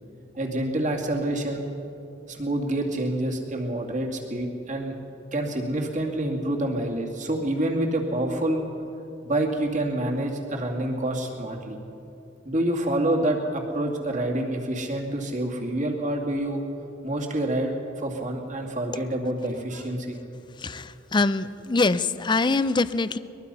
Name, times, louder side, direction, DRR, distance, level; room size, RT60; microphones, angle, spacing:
voice 1, 0.3-1.6 2.3-4.9 5.3-8.6 9.2-11.8 12.4-16.6 17.0-20.2, right 1 dB, 40° right, 1 dB, 2.5 m, -27 dB
voice 2, 20.6-23.2, left 3 dB, 25° left, 14 dB, 0.5 m, -24 dB
23.0 x 21.0 x 5.6 m, 2.8 s
head